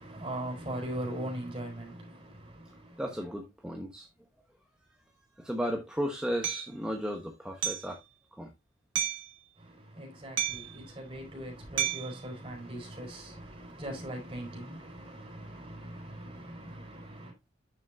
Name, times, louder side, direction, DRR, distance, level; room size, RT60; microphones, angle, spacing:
voice 1, 0.0-3.1 9.6-17.3, right 1 dB, 25° right, 4.8 m, -40 dB
voice 2, 3.0-4.1 5.4-8.0 8.4-8.5, equal, 5° right, 1.1 m, -34 dB
Hammer, 6.4-6.7 7.6-7.9 9.0-9.3 10.4-10.8 11.8-12.2, right 11 dB, 60° right, 1.7 m, -31 dB
9.6 x 7.2 x 2.6 m
head